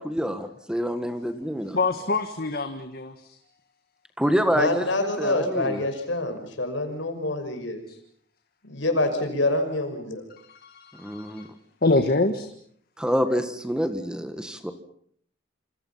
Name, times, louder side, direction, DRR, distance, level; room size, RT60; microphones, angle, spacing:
voice 1, 0.0-1.8 4.2-5.8 11.0-11.5 13.0-14.7, equal, 5° right, 8 dB, 1.7 m, -27 dB
voice 2, 1.7-3.3 10.5-11.5 11.8-12.5, left 2 dB, 50° left, 7 dB, 1.7 m, -25 dB
voice 3, 4.5-7.8 8.6-10.2, left 2 dB, 75° left, 6 dB, 6.0 m, -26 dB
28.0 x 27.0 x 5.8 m, 0.63 s
head